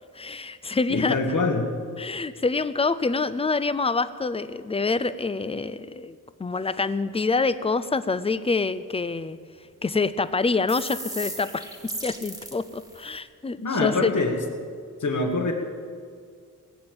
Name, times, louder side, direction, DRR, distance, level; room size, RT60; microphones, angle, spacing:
voice 1, 0.2-1.2 2.0-9.4 9.8-11.6 12.0-14.1, left 4 dB, 20° left, 14 dB, 0.5 m, -26 dB
voice 2, 0.9-1.7 13.6-14.4 15.0-15.5, left 3 dB, 60° left, 3 dB, 2.0 m, -24 dB
sound 1, 10.7-13.2, right 1 dB, 10° right, 1.5 m, -37 dB
19.5 x 8.9 x 7.8 m, 2.1 s
wide cardioid pair, 155°, 33 cm